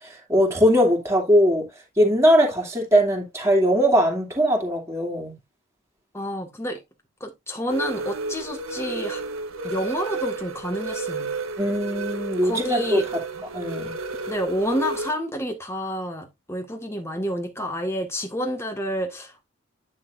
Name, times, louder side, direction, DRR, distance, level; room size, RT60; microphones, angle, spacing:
voice 1, 0.0-1.7 2.0-5.3 11.6-13.0 13.5-13.9, equal, 15° right, 2.6 m, -20 dB
voice 2, 6.1-6.8 7.2-9.2 9.6-11.3 12.4-13.1 14.3-19.3, equal, 15° left, 1.8 m, -29 dB
sound 1, 7.7-15.1, right 4 dB, 80° right, 1.3 m, -32 dB
10.5 x 6.3 x 2.6 m
head